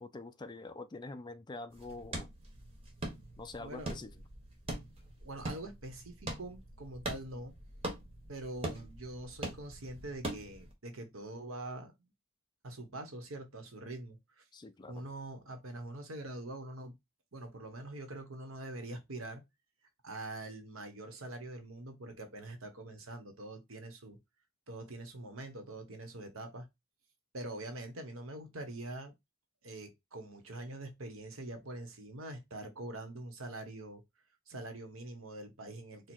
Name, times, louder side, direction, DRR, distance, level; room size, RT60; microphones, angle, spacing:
voice 1, 0.0-2.3 3.4-4.1 14.5-15.1, left 3 dB, 20° left, 0.4 m, -45 dB
sound 1, 1.7-10.7, right 1 dB, 25° right, 1.3 m, -43 dB
voice 2, 3.6-3.9 5.2-7.6 8.3-11.9 12.6-14.4 14.9-17.0 17.3-19.4 20.0-24.2 24.7-26.7 27.3-29.1 29.6-34.0 34.5-36.1, right 1 dB, 75° right, 1.2 m, -44 dB
4.6 x 2.3 x 4.3 m
head